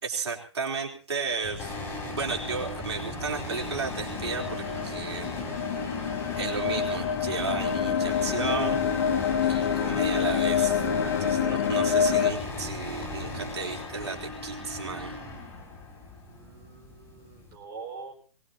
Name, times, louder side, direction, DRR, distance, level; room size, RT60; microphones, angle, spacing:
voice 1, 0.0-1.8 2.1-5.3 6.4-8.8 9.4-10.8 11.2-15.2, right 4 dB, 65° right, 0 dB, 3.7 m, -33 dB
sound 1, 1.4-13.5, left 1 dB, 35° left, 7.2 m, -41 dB
sound 2, 1.6-17.6, left 2 dB, 15° left, 4.9 m, -38 dB
sound 3, 3.6-12.3, left 8 dB, 55° left, 1.4 m, -27 dB
voice 2, 11.0-11.6 16.3-18.2, right 4 dB, 20° right, 0 dB, 5.0 m, -44 dB
23.0 x 20.0 x 2.9 m, 0.39 s
figure-of-eight pair, 130°, 15 cm